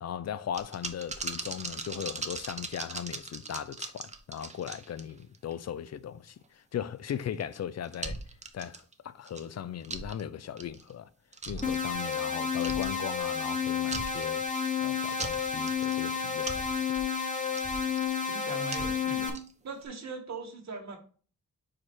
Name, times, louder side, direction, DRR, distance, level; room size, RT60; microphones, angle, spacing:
voice 1, 0.0-6.4 6.7-8.2 8.5-11.1 11.5-14.4 14.8-16.9, left 9 dB, 55° left, 0.5 m, -38 dB
sound 1, 0.5-5.5 5.9-6.0 7.0-7.6 7.8-8.9 9.3-9.4 9.8-10.2 10.6-10.9 11.3-12.3 12.5-13.5 13.8-14.7 15.1-16.0 16.3-18.1 18.6-19.5 19.8-19.9, right 3 dB, 20° right, 0.7 m, -39 dB
sound 2, 11.6-19.3, left 6 dB, 25° left, 1.2 m, -31 dB
voice 2, 18.3-19.3 19.6-21.0, right 4 dB, 60° right, 1.7 m, -40 dB
5.0 x 4.2 x 4.5 m
wide cardioid pair, 115°, 31 cm